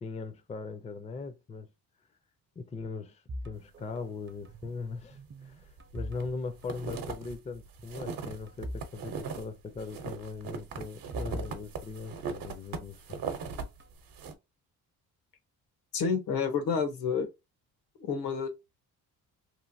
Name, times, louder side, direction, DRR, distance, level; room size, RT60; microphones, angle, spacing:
voice 1, 0.0-1.7 2.6-13.2, left 4 dB, 20° left, 0.4 m, -40 dB
sound 1, 3.3-4.8 5.1-6.7 6.9-7.2 7.8-8.9 9.2-9.3 10.5-12.5 13.1-13.9, equal, 35° right, 0.5 m, -43 dB
sound 2, 5.7-6.3 6.6-9.4 9.8-13.6 14.0-14.3, right 5 dB, 70° right, 0.8 m, -39 dB
voice 2, 15.9-17.3 18.0-18.5, left 5 dB, 85° left, 1.0 m, -29 dB
3.1 x 2.5 x 2.6 m
cardioid pair, 100°, 36 cm